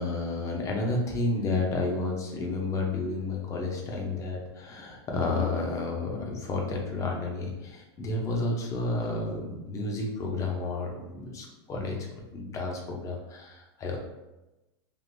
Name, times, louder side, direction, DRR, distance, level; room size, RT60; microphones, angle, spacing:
voice 1, 0.0-12.0 12.3-14.0, left 3 dB, 25° left, 0 dB, 0.7 m, -31 dB
3.5 x 2.5 x 2.6 m, 1.0 s
supercardioid pair, 130°, 13 cm